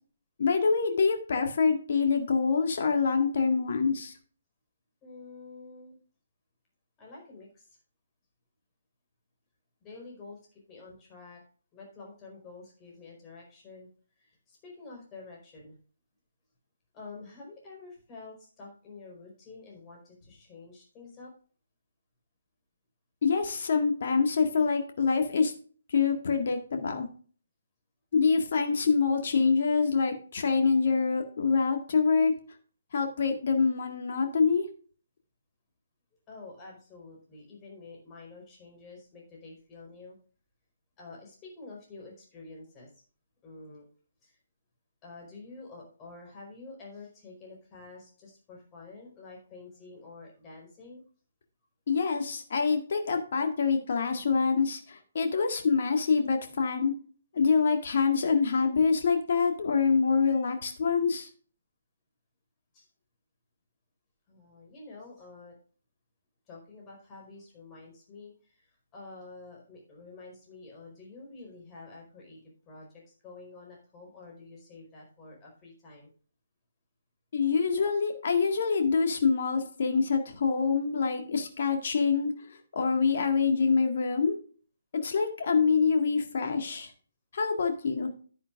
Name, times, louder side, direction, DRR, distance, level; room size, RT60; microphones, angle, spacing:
voice 1, 0.4-4.1 23.2-25.5 25.9-27.1 28.1-32.3 32.9-34.7 51.9-56.9 57.3-61.3 77.3-84.4 85.0-86.9 87.3-88.1, left 5 dB, 50° left, 4 dB, 1.8 m, -26 dB
voice 2, 5.0-6.0 7.0-7.8 9.8-11.4 11.7-13.9 14.2-15.8 16.9-21.3 36.3-40.2 41.0-42.9 43.4-43.8 44.2-44.4 45.0-51.0 62.7-62.9 64.3-65.5 66.5-72.9 73.2-76.1, left 3 dB, 20° left, -2 dB, 4.6 m, -48 dB
11.0 x 9.7 x 2.5 m, 0.41 s
figure-of-eight pair, 135°, 0 cm